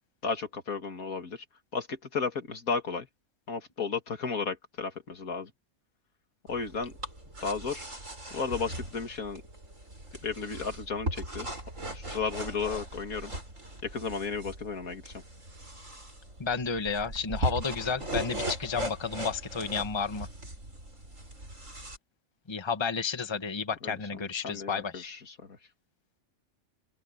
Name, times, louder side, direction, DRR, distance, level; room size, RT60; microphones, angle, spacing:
voice 1, 0.2-1.4 1.7-3.1 3.5-5.5 6.5-6.9 7.4-7.9 8.3-9.4 10.2-11.5 11.9-13.3 13.8-15.2 23.8-25.6, left 5 dB, 80° left, 2.6 m, -34 dB
sound 1, 6.5-22.0, right 1 dB, 60° right, 7.4 m, -39 dB
voice 2, 16.4-20.3 22.5-25.1, left 5 dB, 20° left, 1.2 m, -32 dB
open air
omnidirectional pair, 1.5 m